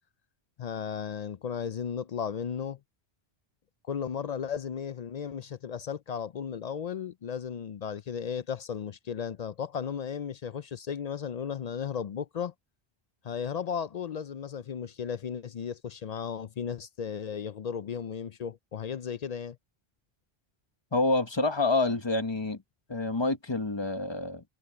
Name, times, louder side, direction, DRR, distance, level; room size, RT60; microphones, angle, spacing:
voice 1, 0.6-2.8 3.9-12.5 13.2-19.6, left 7 dB, 55° left, 0.5 m, -35 dB
voice 2, 20.9-22.6 22.9-24.4, left 3 dB, 25° left, 1.3 m, -27 dB
omnidirectional pair, 1.1 m